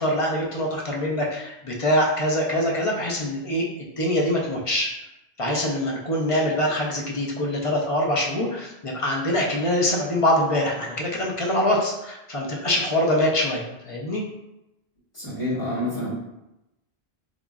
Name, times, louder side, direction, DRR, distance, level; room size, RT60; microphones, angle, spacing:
voice 1, 0.0-4.9 5.4-14.2, left 1 dB, 45° left, -2 dB, 0.4 m, -24 dB
voice 2, 15.1-16.1, left 1 dB, 30° left, -9 dB, 1.5 m, -28 dB
3.7 x 2.9 x 2.3 m, 0.91 s
omnidirectional pair, 1.1 m